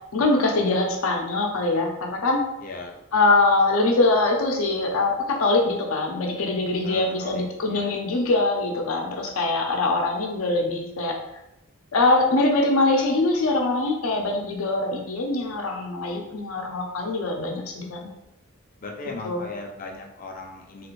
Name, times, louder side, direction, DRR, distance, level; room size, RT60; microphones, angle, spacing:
voice 1, 0.1-2.4 3.1-11.2 11.9-18.1 19.2-19.4, left 2 dB, 80° left, 1 dB, 0.6 m, -23 dB
voice 2, 2.6-2.9 6.8-8.0 18.8-20.9, left 3 dB, 40° left, 1 dB, 0.5 m, -38 dB
3.1 x 2.5 x 3.0 m, 0.88 s
head